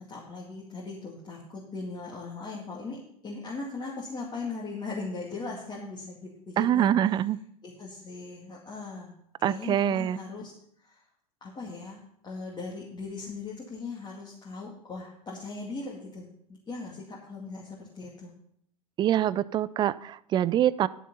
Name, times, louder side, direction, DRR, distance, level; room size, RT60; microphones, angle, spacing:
voice 1, 0.1-6.9 7.6-9.1 9.4-10.5 10.8-11.0 11.4-18.3, left 3 dB, 20° left, -4 dB, 2.4 m, -39 dB
voice 2, 6.6-7.4 9.4-10.2 19.0-20.9, right 11 dB, 25° right, 19 dB, 0.4 m, -25 dB
11.5 x 7.2 x 5.5 m, 0.69 s
figure-of-eight pair, 80°, 20 cm